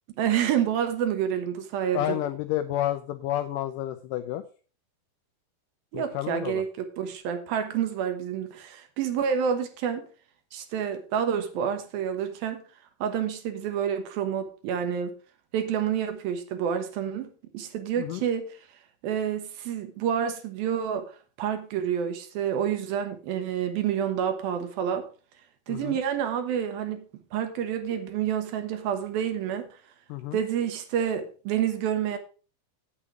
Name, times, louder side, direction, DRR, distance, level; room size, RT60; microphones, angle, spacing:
voice 1, 0.2-2.2 5.9-10.1 10.5-12.6 13.0-15.1 15.5-17.3 17.5-18.5 19.0-21.1 21.4-25.1 25.7-27.0 27.3-29.7 30.3-32.2, right 8 dB, 75° right, 7 dB, 2.9 m, -28 dB
voice 2, 1.9-4.4 5.9-6.6 18.0-18.2 25.7-26.0 30.1-30.4, left 13 dB, 85° left, 10 dB, 1.9 m, -30 dB
8.8 x 8.6 x 4.9 m, 0.38 s
omnidirectional pair, 4.4 m